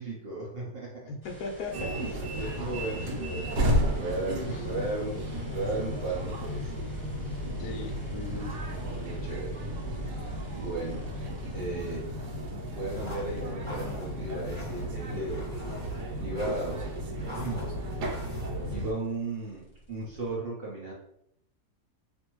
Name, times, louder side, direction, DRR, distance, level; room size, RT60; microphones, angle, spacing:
voice 1, 0.0-1.1 2.3-5.2 5.5-6.7 9.0-9.6 10.5-11.1 11.5-12.1 12.7-15.5 16.2-16.8 17.1-17.8 18.7-20.9, right 2 dB, 65° right, -4 dB, 0.6 m, -35 dB
voice 2, 1.1-2.3 4.4-4.6 7.6-8.6, left 3 dB, 70° left, 2 dB, 0.9 m, -38 dB
sound 1, 1.2-13.5 15.6-15.7 15.9-20.3, right 2 dB, 25° left, 1.0 m, -46 dB
sound 2, 1.7-18.9, equal, 80° right, 1.2 m, -33 dB
sound 3, 12.9-18.5, left 1 dB, 5° right, 1.1 m, -46 dB
2.6 x 2.5 x 2.9 m, 0.75 s
omnidirectional pair, 1.7 m